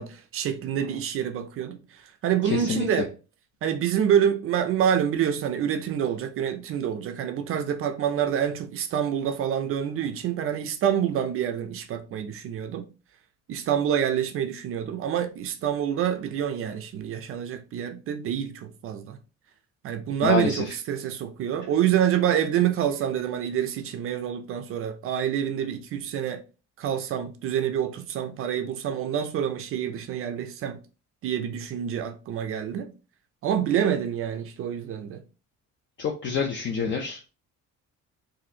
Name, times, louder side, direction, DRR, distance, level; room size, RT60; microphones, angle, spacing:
voice 1, 0.0-3.1 3.6-12.9 13.5-19.2 19.8-26.4 26.8-30.8 31.2-32.9 33.4-35.2 36.9-37.0, right 9 dB, 45° right, 0.4 m, -27 dB
voice 2, 2.4-2.9 20.2-20.7 36.0-37.3, left 6 dB, 40° left, 0.5 m, -27 dB
4.1 x 2.6 x 2.7 m
cardioid pair, 180°, 30 cm